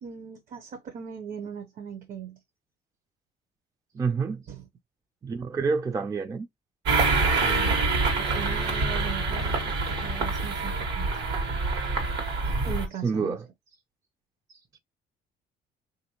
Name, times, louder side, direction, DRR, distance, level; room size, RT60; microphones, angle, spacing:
voice 1, 0.0-2.4 4.4-4.7 7.4-7.8 8.2-11.1 12.7-13.4 14.5-14.6, right 7 dB, 55° right, 0.7 m, -39 dB
voice 2, 4.0-4.4 5.2-6.5 13.0-13.4, right 4 dB, 20° right, 0.3 m, -27 dB
sound 1, 6.8-12.9, right 3 dB, 80° right, 1.3 m, -26 dB
3.4 x 2.5 x 2.9 m
cardioid pair, 110°, 17 cm